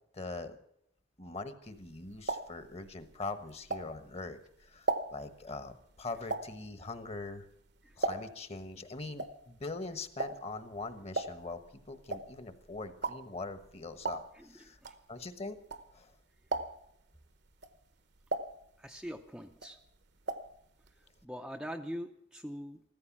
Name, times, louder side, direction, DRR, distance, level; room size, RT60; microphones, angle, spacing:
voice 1, 0.1-0.6 1.2-7.5 8.0-11.6 11.9-14.8 15.1-15.6 15.9-16.1, left 3 dB, 30° left, 11 dB, 1.2 m, -42 dB
sound 1, 1.7-4.3 4.6-8.6 8.8-16.1 16.4-17.0 17.5-19.2 19.5-20.6 20.8-20.9 21.2-21.3, right 2 dB, 60° right, 1.0 m, -38 dB
voice 2, 14.3-14.9 18.8-19.8 21.2-22.8, equal, 5° right, 3 dB, 0.6 m, -43 dB
15.0 x 14.5 x 6.0 m, 0.72 s
head